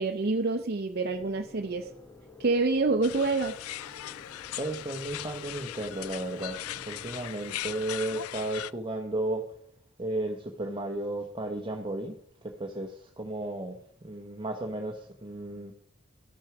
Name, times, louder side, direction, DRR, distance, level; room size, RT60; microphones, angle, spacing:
voice 1, 0.0-1.9 2.4-3.6, right 3 dB, 45° right, 5 dB, 0.6 m, -27 dB
sound 1, 1.1-7.9, left 3 dB, 15° left, 0.8 m, -50 dB
sound 2, 3.0-8.7, left 13 dB, 90° left, 0.4 m, -39 dB
voice 2, 4.6-6.6 6.9-9.5 10.0-12.1 12.4-13.8 14.0-15.7, right 1 dB, 20° right, 2 dB, 0.9 m, -34 dB
13.0 x 6.2 x 5.9 m, 0.65 s
head